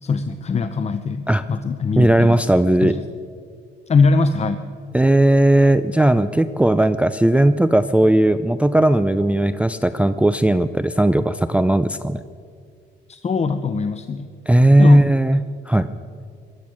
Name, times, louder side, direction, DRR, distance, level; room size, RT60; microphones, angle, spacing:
voice 1, 0.0-2.4 2.8-3.0 3.9-4.7 13.1-14.3 14.8-15.1, left 4 dB, 35° left, 9 dB, 0.7 m, -21 dB
voice 2, 2.0-2.9 4.9-12.2 14.5-15.4 15.7-15.9, right 1 dB, 5° right, 11 dB, 0.4 m, -16 dB
18.0 x 12.0 x 6.2 m, 2.2 s
cardioid pair, 90°, 20 cm